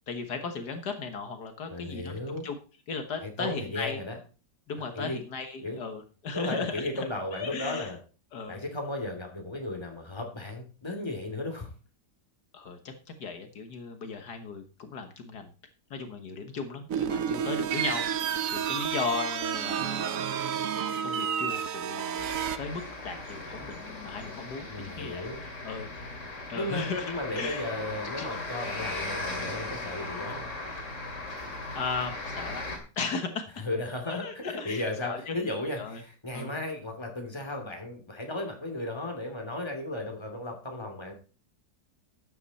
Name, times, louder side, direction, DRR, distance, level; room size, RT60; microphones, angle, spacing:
voice 1, 0.1-2.6 2.9-4.0 4.7-7.1 7.3-7.9 8.3-8.6 12.5-12.9 13.2-15.5 15.9-18.1 18.5-20.3 21.0-22.3 22.6-25.9 26.5-27.7 28.2-28.3 31.3-32.6 33.0-33.6 34.1-35.4 35.8-36.0 36.3-36.6, left 4 dB, 75° left, 6 dB, 1.9 m, -36 dB
voice 2, 1.7-2.5 3.2-4.2 4.9-5.2 5.6-5.8 6.3-8.0 8.5-11.7 24.7-25.4 26.5-30.5 33.6-41.1, left 2 dB, 15° left, 3 dB, 2.8 m, -35 dB
sound 1, 16.9-22.6, right 8 dB, 60° right, 1.0 m, -30 dB
sound 2, 22.2-32.8, left 2 dB, 45° left, 3.1 m, -38 dB
12.5 x 9.1 x 4.2 m, 0.35 s
omnidirectional pair, 1.8 m